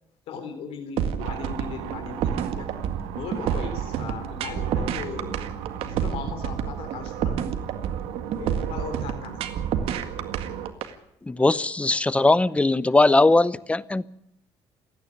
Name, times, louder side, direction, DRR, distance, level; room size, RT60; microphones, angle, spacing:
voice 1, 0.3-2.7 3.1-5.5 5.8-7.4 8.4-9.4, left 6 dB, 70° left, 5 dB, 3.9 m, -37 dB
sound 1, 1.0-10.9, right 9 dB, 70° right, 1.9 m, -28 dB
sound 2, 1.2-10.7, right 8 dB, 85° right, 2.2 m, -36 dB
voice 2, 11.3-14.1, left 2 dB, 10° left, 19 dB, 0.7 m, -20 dB
27.5 x 9.9 x 9.9 m, 0.80 s
cardioid pair, 105°, 10 cm